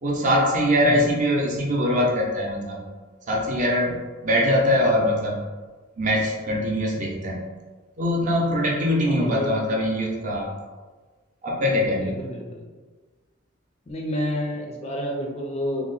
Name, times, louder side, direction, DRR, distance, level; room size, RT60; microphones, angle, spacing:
voice 1, 0.0-2.8 3.3-5.4 6.0-7.5 8.0-10.5 11.4-12.1, equal, 40° right, -2 dB, 0.6 m, -22 dB
voice 2, 9.0-9.6 12.0-12.7 13.9-15.9, equal, 30° left, 0 dB, 0.4 m, -30 dB
2.8 x 2.1 x 3.8 m, 1.4 s
head